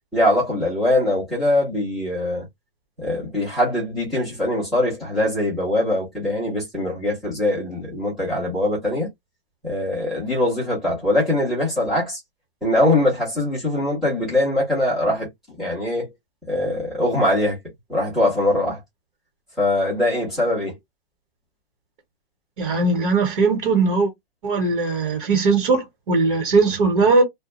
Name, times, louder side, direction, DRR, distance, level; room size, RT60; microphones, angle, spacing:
voice 1, 0.1-2.4 3.0-9.1 9.6-12.2 12.6-15.3 15.6-16.1 16.5-17.6 17.9-18.8 19.6-20.8, left 1 dB, ahead, 0.4 m, -22 dB
voice 2, 22.6-24.1 24.4-27.2, right 3 dB, 40° right, 1.0 m, -19 dB
2.3 x 2.1 x 2.9 m
hypercardioid pair, 155°, 30 cm